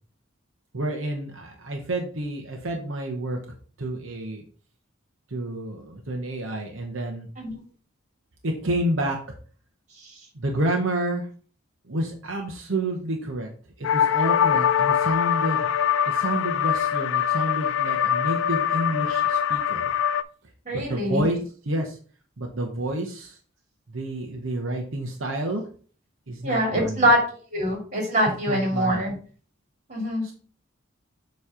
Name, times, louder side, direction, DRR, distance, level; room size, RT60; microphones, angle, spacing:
voice 1, 0.7-3.4 3.8-4.4 5.3-7.3 8.4-9.2 10.3-11.3 11.9-13.5 13.8-15.7 16.1-19.9 20.7-21.4 21.6-22.0 22.4-23.4 23.9-25.7 26.3-27.0 28.5-29.0 30.2-30.3, right 1 dB, 75° right, 2 dB, 1.0 m, -29 dB
sound 1, 13.8-20.2, left 9 dB, 70° left, 0.3 m, -23 dB
voice 2, 20.6-21.3 26.4-27.2 27.5-29.1 29.9-30.2, equal, 35° right, 0 dB, 2.5 m, -23 dB
7.2 x 3.2 x 4.9 m, 0.41 s
head